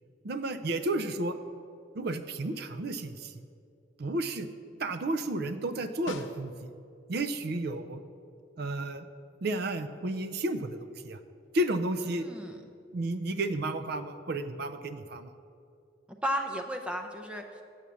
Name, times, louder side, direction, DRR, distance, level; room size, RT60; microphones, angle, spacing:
voice 1, 0.2-1.4 1.9-3.3 4.0-4.5 4.8-6.7 7.1-8.0 8.6-9.1 9.4-11.2 11.5-12.3 12.9-15.3, right 1 dB, 55° right, 10 dB, 0.5 m, -32 dB
Snare drum, 6.1-7.0 11.4-11.5, left 3 dB, 90° left, 0.6 m, -43 dB
voice 2, 12.1-12.6 16.2-17.6, equal, 5° right, 4 dB, 0.4 m, -34 dB
7.3 x 6.2 x 6.9 m, 2.4 s
head